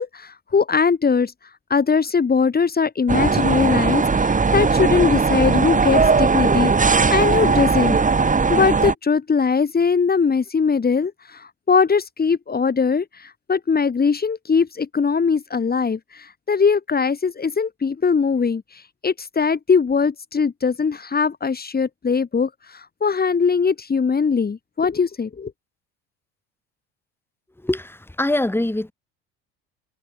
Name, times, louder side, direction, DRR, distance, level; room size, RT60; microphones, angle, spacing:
voice 1, 0.0-1.3 1.7-8.0 8.5-25.5, left 5 dB, 30° left, 5.2 m, -21 dB
sound 1, 3.1-8.9, right 4 dB, 25° right, 5.3 m, -18 dB
voice 2, 27.6-28.9, left 1 dB, 5° left, 5.3 m, -23 dB
supercardioid pair, 85°, 33 cm